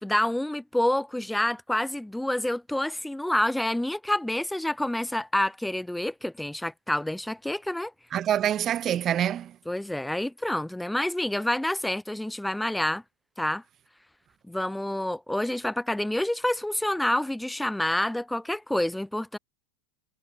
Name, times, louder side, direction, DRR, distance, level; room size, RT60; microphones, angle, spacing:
voice 1, 0.0-7.9 9.7-13.0 13.4-13.6 14.5-19.4, left 1 dB, 5° left, 0.6 m, -28 dB
voice 2, 8.1-9.5, right 10 dB, 35° right, 0.3 m, -25 dB
supercardioid pair, 120°, 0 cm